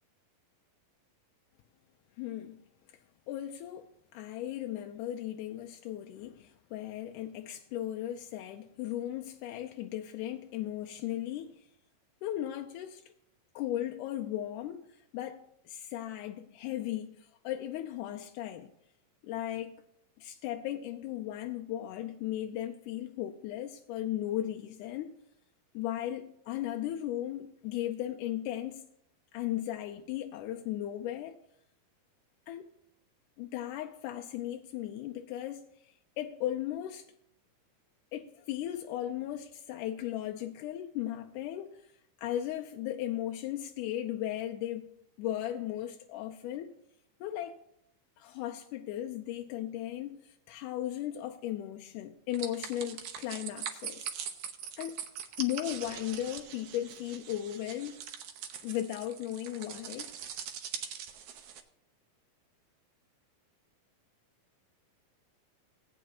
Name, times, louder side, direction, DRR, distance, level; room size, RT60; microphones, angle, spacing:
voice 1, 2.2-2.6 3.3-11.7 12.2-13.0 13.6-18.7 19.2-19.8 20.2-25.1 25.7-28.9 29.3-31.4 32.5-32.7 33.4-37.1 38.1-41.9 42.2-46.7 47.2-47.6 48.2-54.1 54.8-55.0 55.4-57.9 58.6-60.1, left 12 dB, 80° left, 1.9 m, -36 dB
sound 1, 52.3-61.6, right 8 dB, 75° right, 1.9 m, -42 dB
17.0 x 9.0 x 2.8 m
omnidirectional pair, 4.0 m